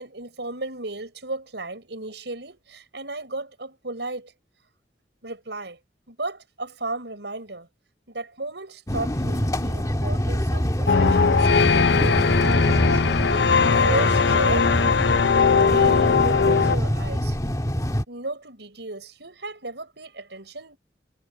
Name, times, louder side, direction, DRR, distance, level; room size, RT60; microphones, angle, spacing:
voice 1, 0.0-4.3 5.2-5.8 6.1-7.7 8.1-13.2 13.8-14.7 15.5-17.4 18.1-20.8, right 2 dB, 75° right, 6.5 m, -34 dB
sound 1, 8.9-18.0, equal, 20° left, 2.2 m, -25 dB
sound 2, 10.9-16.8, left 5 dB, 75° left, 0.6 m, -19 dB
head